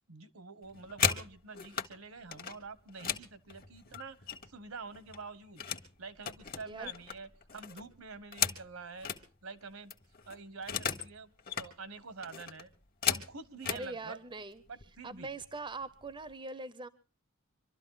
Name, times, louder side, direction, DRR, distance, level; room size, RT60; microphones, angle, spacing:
voice 1, 0.1-5.6 6.0-9.1 9.4-9.9 10.3-11.3 11.6-12.7 13.1-14.2 14.7-15.3, right 4 dB, 70° right, 15 dB, 1.2 m, -47 dB
sound 1, 0.6-1.9 2.3-4.6 4.9-5.9 6.2-9.2 9.6-9.7 9.9-11.1 11.4-11.7 12.2-13.9 14.7-14.8 15.2-15.5 15.8-16.3, left 7 dB, 45° left, 1.4 m, -36 dB
voice 2, 13.7-14.6 15.0-16.9, right 3 dB, 25° right, 15 dB, 0.7 m, -42 dB
25.0 x 12.5 x 4.0 m, 0.35 s
head